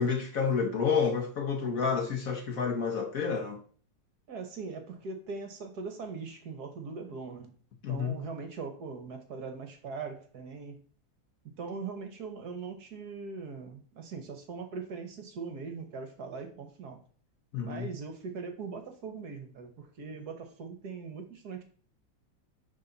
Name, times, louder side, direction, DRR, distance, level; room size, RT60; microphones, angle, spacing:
voice 1, 0.0-3.6 7.8-8.2 17.5-17.9, left 6 dB, 55° left, 1.1 m, -29 dB
voice 2, 4.3-7.5 7.9-10.8 11.4-17.0 17.6-21.6, right 4 dB, 60° right, 1.4 m, -41 dB
10.0 x 3.7 x 3.9 m
omnidirectional pair, 2.1 m